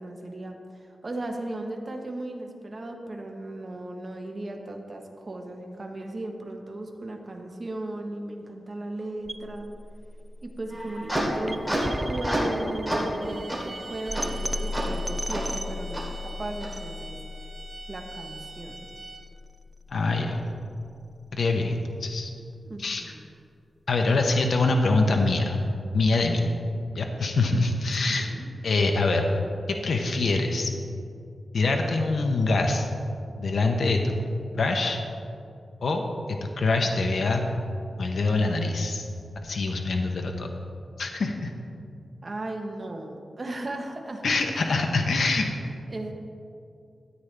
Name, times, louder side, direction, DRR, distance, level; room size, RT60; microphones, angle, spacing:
voice 1, 0.0-9.7 10.4-11.8 12.1-17.2 17.9-18.9 22.6-23.2 28.1-28.5 42.2-44.6 45.9-46.1, right 2 dB, 35° right, 2 dB, 1.1 m, -36 dB
sound 1, 9.3-21.3, left 1 dB, 15° right, 0.3 m, -36 dB
sound 2, 10.7-12.6 12.9-13.1 13.5-13.6 14.1-14.2 14.7-14.8 15.3-15.4 15.9-16.0 16.6-16.7, right 1 dB, 10° left, 2.6 m, -28 dB
sound 3, 13.2-19.4, right 4 dB, 55° right, 1.2 m, -43 dB
voice 2, 19.9-20.4 21.3-22.3 22.8-23.0 23.9-25.6 25.9-26.5 26.9-28.3 28.6-29.3 29.7-30.7 31.5-32.9 33.4-34.1 34.5-35.0 35.8-36.0 36.6-37.4 38.0-39.1 39.4-40.5 41.0-41.5 44.2-45.5, left 3 dB, 75° left, 3 dB, 0.8 m, -24 dB
13.5 x 8.7 x 3.4 m, 2.5 s
wide cardioid pair, 105°, 0 cm